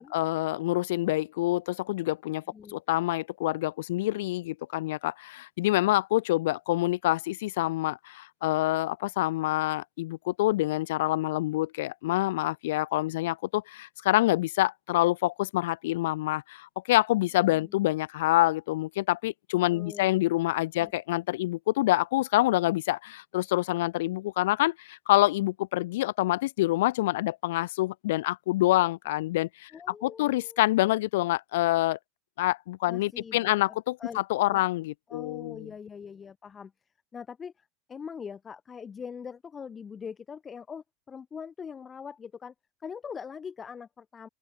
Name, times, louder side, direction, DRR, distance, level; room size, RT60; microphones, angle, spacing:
voice 1, 0.0-2.4 2.7-29.7 30.0-32.0 32.4-35.7, left 17 dB, 75° left, 0.6 m, -26 dB
voice 2, 19.7-20.2 20.8-20.9 29.7-30.6 32.9-34.6 35.1-36.7 37.1-42.5 42.8-44.3, left 6 dB, 25° left, 0.7 m, -42 dB
open air
hypercardioid pair, 95°, 0 cm